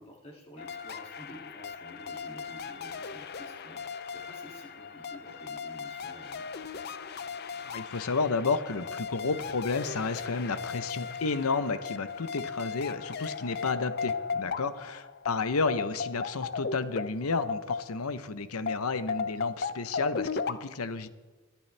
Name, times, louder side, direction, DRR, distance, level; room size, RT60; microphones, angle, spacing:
voice 1, 0.0-3.8 4.1-6.5 14.4-14.5, left 1 dB, 30° left, 0 dB, 2.4 m, -50 dB
sound 1, 0.6-18.2 18.7-20.5, left 5 dB, 45° left, 0.5 m, -37 dB
voice 2, 7.6-21.1, left 4 dB, 85° left, 12 dB, 0.8 m, -31 dB
22.5 x 10.0 x 3.3 m, 1.3 s
head